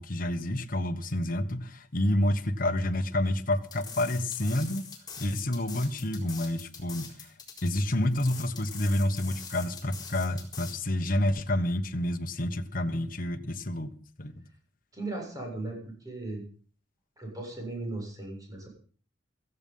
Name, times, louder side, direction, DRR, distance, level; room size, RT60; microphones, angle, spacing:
voice 1, 0.0-4.8 5.2-7.3 7.6-13.9 14.2-14.4, left 1 dB, 45° left, 1.3 m, -29 dB
sound 1, 3.7-10.8, left 6 dB, 20° left, 4.1 m, -44 dB
voice 2, 14.9-16.4 17.2-18.7, right 2 dB, 20° right, 7.1 m, -37 dB
16.5 x 14.5 x 5.6 m
head